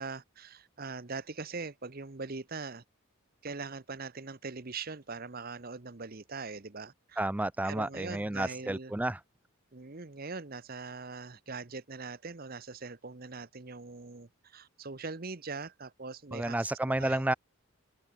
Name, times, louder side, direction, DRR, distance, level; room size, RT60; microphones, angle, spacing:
voice 1, 0.0-2.8 3.4-7.3 7.6-8.9 9.7-16.7 17.0-17.2, right 4 dB, 40° right, 1.0 m, -41 dB
voice 2, 7.2-9.2 16.3-17.3, right 1 dB, 5° right, 0.3 m, -31 dB
open air
head